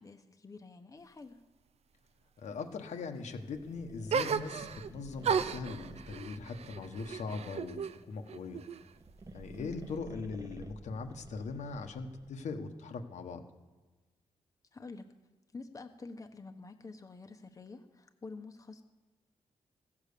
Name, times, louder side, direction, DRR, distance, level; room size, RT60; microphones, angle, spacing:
voice 1, 0.0-1.4 9.6-9.8 14.7-15.1 15.5-18.8, left 3 dB, 25° left, 5 dB, 0.9 m, -48 dB
voice 2, 2.4-8.6 9.3-13.4, left 4 dB, 80° left, 4 dB, 1.2 m, -40 dB
sound 1, 3.4-7.9 8.8-12.4, right 2 dB, 30° right, 0.8 m, -52 dB
sound 2, 4.1-4.9 5.2-8.0 8.3-9.1, right 6 dB, 60° right, 0.5 m, -35 dB
15.0 x 7.3 x 6.7 m, 1.3 s
cardioid pair, 105°, 12 cm